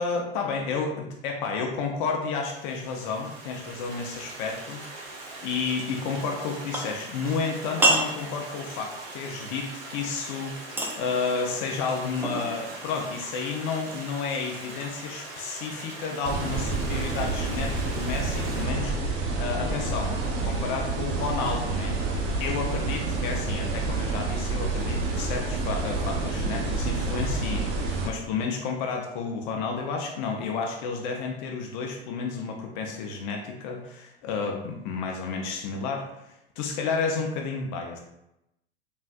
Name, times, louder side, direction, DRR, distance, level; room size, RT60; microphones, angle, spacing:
voice 1, 0.0-38.0, left 5 dB, 55° left, 2 dB, 0.5 m, -31 dB
Stream, 2.3-18.6, right 2 dB, 65° right, 1.0 m, -41 dB
Glass Bottles Foley, 5.2-14.8, right 2 dB, 10° right, 0.3 m, -33 dB
sound 1, 16.2-28.1, right 3 dB, 45° right, 0.7 m, -28 dB
3.4 x 2.3 x 2.3 m, 0.86 s
hypercardioid pair, 90°, 30 cm